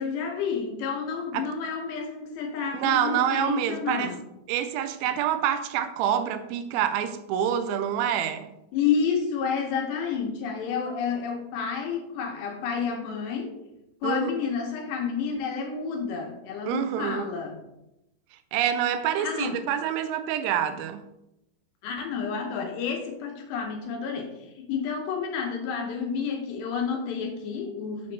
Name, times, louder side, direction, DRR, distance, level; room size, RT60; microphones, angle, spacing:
voice 1, 0.0-4.2 8.7-13.6 14.0-17.7 19.2-19.6 21.8-28.1, left 6 dB, 80° left, 2 dB, 2.8 m, -30 dB
voice 2, 2.7-4.1 4.5-8.5 14.0-14.3 16.7-17.3 18.5-21.0, right 9 dB, 85° right, 10 dB, 2.9 m, -27 dB
6.9 x 6.7 x 3.2 m, 0.88 s
omnidirectional pair, 5.3 m